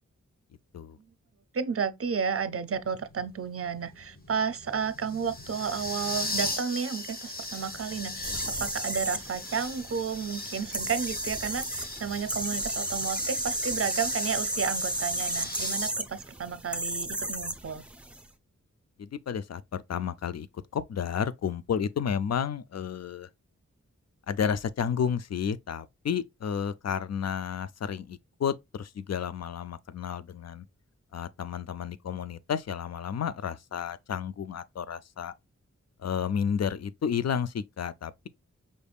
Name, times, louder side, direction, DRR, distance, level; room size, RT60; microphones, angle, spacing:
voice 1, 1.5-17.8, right 6 dB, 50° right, 0.6 m, -32 dB
sound 1, 2.8-15.9, left 2 dB, 30° left, 1.2 m, -38 dB
sound 2, 8.2-18.2, right 1 dB, 5° right, 0.6 m, -33 dB
voice 2, 19.0-20.5 20.7-23.3 24.3-30.6 31.1-35.3 36.0-38.3, left 7 dB, 60° left, 0.5 m, -31 dB
5.3 x 3.4 x 2.3 m
cardioid pair, 60°, 30 cm